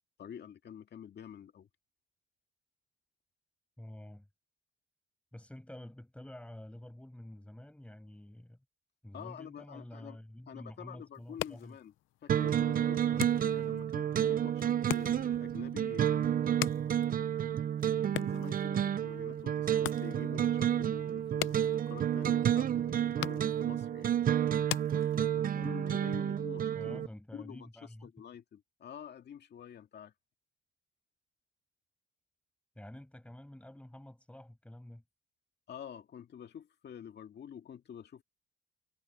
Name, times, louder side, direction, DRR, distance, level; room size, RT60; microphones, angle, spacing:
voice 1, 0.2-1.7 9.1-10.2 10.5-11.9 12.2-16.5 18.1-24.1 25.4-27.0 27.3-30.1 35.7-38.2, left 8 dB, 60° left, 2.0 m, -48 dB
voice 2, 3.8-4.3 5.3-8.6 9.0-11.8 13.1-13.3 26.7-28.1 32.8-35.0, left 1 dB, 5° left, 7.0 m, -49 dB
sound 1, 11.1-25.6, left 15 dB, 85° left, 0.6 m, -44 dB
sound 2, 12.3-27.1, right 10 dB, 45° right, 0.6 m, -30 dB
cardioid pair, 90°, 20 cm